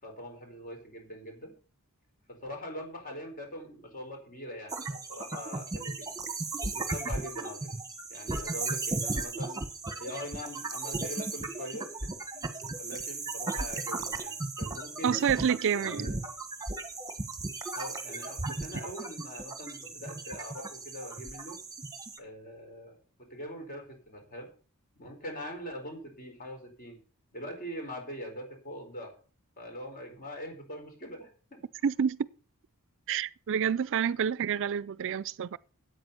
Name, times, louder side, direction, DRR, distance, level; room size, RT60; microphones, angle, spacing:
voice 1, 0.0-1.5 2.3-6.1 6.6-7.7 8.1-9.6 10.0-15.2 15.7-16.2 17.7-21.6 22.2-23.0 23.3-24.5 25.0-27.0 27.3-29.1 29.6-31.6, equal, 40° left, 4.5 m, -42 dB
sound 1, 4.7-22.2, right 3 dB, 15° right, 1.4 m, -36 dB
voice 2, 15.0-16.1 31.8-32.3 33.1-35.6, right 7 dB, 60° right, 0.4 m, -28 dB
9.0 x 8.5 x 6.8 m
head